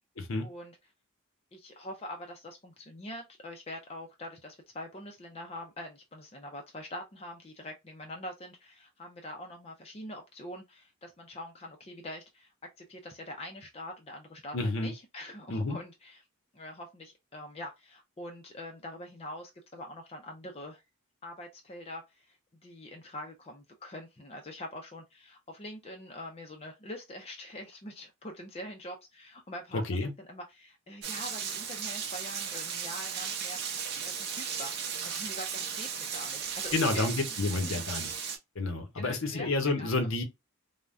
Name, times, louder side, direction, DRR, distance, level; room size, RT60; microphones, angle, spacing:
voice 1, 0.4-0.8 1.5-12.5 12.8-14.6 14.8-16.2 16.5-20.8 21.2-37.8 38.9-39.5 39.8-39.9, left 1 dB, 25° left, 0.4 m, -44 dB
voice 2, 14.5-14.9 15.5-15.8 29.7-30.1 36.7-38.1 38.5-40.2, left 2 dB, 65° left, 0.7 m, -29 dB
Rain, 31.0-38.4, right 7 dB, 45° right, 0.7 m, -36 dB
3.4 x 2.1 x 2.5 m
head